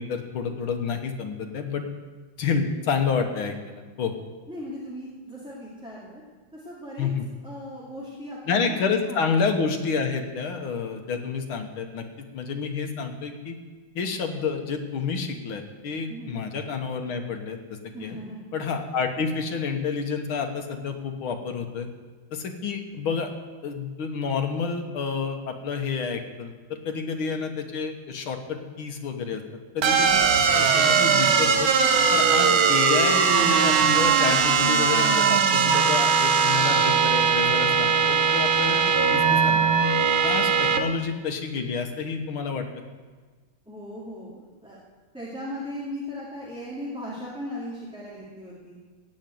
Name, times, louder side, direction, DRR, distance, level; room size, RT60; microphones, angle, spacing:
voice 1, 0.0-1.8 2.4-4.1 7.0-7.2 8.5-12.0 12.3-13.5 14.0-18.2 18.5-21.9 22.3-23.3 23.6-29.4 29.7-31.7 32.1-38.8 39.1-39.6 40.2-42.7, left 5 dB, 85° left, 5 dB, 2.0 m, -29 dB
voice 2, 4.5-6.2 6.5-7.1 7.4-8.8 9.1-9.2 16.1-16.4 17.9-18.6 43.7-44.8 45.1-48.8, equal, 5° right, -7 dB, 2.4 m, -37 dB
sound 1, 29.8-40.8, right 6 dB, 80° right, 1.8 m, -20 dB
15.5 x 5.5 x 9.2 m, 1.4 s
omnidirectional pair, 2.2 m